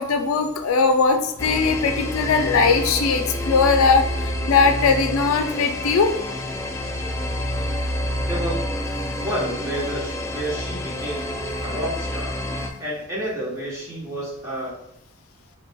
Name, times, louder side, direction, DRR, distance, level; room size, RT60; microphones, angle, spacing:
voice 1, 0.0-4.0 4.5-6.1, left 4 dB, 80° left, 6 dB, 0.4 m, -19 dB
sound 1, 1.4-12.7, left 1 dB, 15° left, 0.4 m, -28 dB
voice 2, 8.3-8.7 9.2-11.3 11.6-12.4 12.8-14.7, right 1 dB, 15° right, -5 dB, 1.0 m, -30 dB
4.8 x 3.1 x 2.2 m, 0.79 s
head